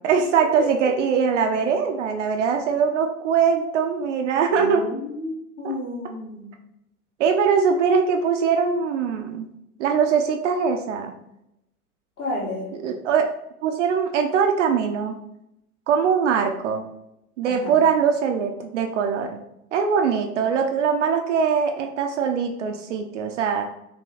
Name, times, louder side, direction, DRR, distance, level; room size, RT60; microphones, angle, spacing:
voice 1, 0.0-4.9 5.6-5.7 7.2-9.5 9.8-11.1 12.8-13.3 13.6-15.2 15.9-16.9 17.4-19.4 19.7-23.7, right 6 dB, 55° right, 4 dB, 0.5 m, -22 dB
voice 2, 4.5-6.5 12.2-12.7 17.4-17.8, left 2 dB, 25° left, -3 dB, 1.0 m, -31 dB
3.1 x 2.9 x 2.8 m, 0.83 s
figure-of-eight pair, 95°, 45 cm